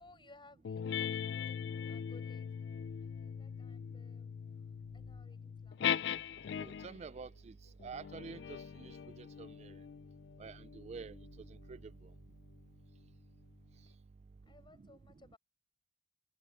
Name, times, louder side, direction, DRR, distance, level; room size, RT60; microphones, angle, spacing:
voice 1, 0.0-4.4 4.9-5.9 14.2-15.4, left 2 dB, 25° left, 4.9 m, -62 dB
sound 1, 0.6-7.0 7.8-12.7, left 8 dB, 65° left, 0.4 m, -41 dB
voice 2, 6.6-7.5 7.8-9.7 10.4-11.2 11.7-11.8, right 5 dB, 35° right, 0.3 m, -48 dB
head